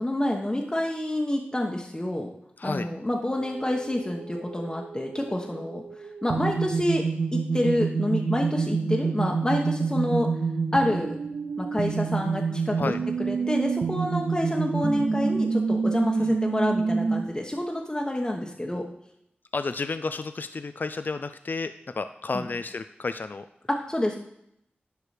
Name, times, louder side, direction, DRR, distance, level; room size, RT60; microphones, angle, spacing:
voice 1, 0.0-2.3 2.6-5.8 6.2-7.0 7.3-10.3 10.7-11.2 11.6-12.8 13.2-18.9 22.3-22.4 23.7-24.2, left 1 dB, 20° left, 0 dB, 1.1 m, -28 dB
voice 2, 2.6-2.9 12.8-13.0 16.2-16.4 19.5-23.5, left 4 dB, 60° left, 10 dB, 0.4 m, -31 dB
sound 1, 3.4-17.2, right 4 dB, 70° right, 0.4 m, -28 dB
11.5 x 4.8 x 5.0 m, 0.74 s
wide cardioid pair, 65°, 4 cm